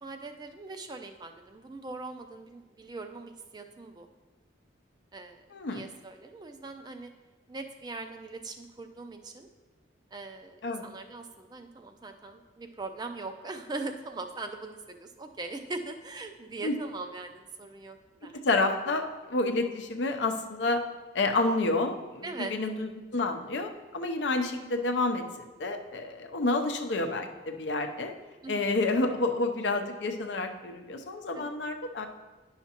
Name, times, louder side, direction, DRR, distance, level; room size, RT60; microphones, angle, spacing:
voice 1, 0.0-4.1 5.1-5.4 5.7-7.1 7.5-9.5 10.1-18.4 22.2-22.5 28.4-28.7 31.4-31.5, right 3 dB, 20° right, 6 dB, 0.4 m, -41 dB
voice 2, 5.5-5.8 10.6-10.9 16.6-16.7 18.4-20.8 21.1-25.2 25.6-28.1 28.5-32.1, left 2 dB, 80° left, 5 dB, 0.6 m, -29 dB
10.0 x 5.7 x 2.9 m, 1.2 s
head